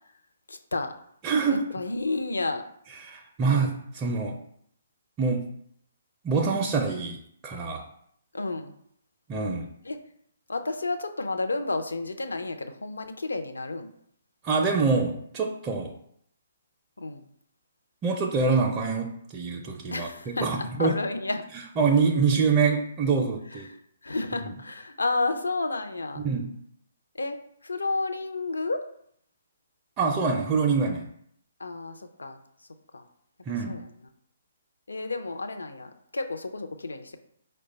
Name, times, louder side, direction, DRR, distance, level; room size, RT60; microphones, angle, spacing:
voice 1, 0.5-0.9 1.5-2.6 8.3-8.7 9.8-10.0 10.5-13.9 17.0-17.3 19.9-20.5 20.8-21.4 23.5-26.2 27.2-27.4 27.6-28.8 31.6-32.4 32.9-33.0 33.7-33.8 34.9-37.2, left 3 dB, 80° left, 7 dB, 0.5 m, -31 dB
voice 2, 1.2-1.8 3.0-4.4 5.2-5.5 6.2-7.2 7.4-7.9 9.3-9.7 14.4-15.9 18.0-21.0 21.8-23.7 24.4-24.5 26.2-26.6 30.0-31.0 33.5-33.8, right 4 dB, 20° right, -1 dB, 0.4 m, -25 dB
4.7 x 2.2 x 4.0 m, 0.69 s
figure-of-eight pair, 135°, 0 cm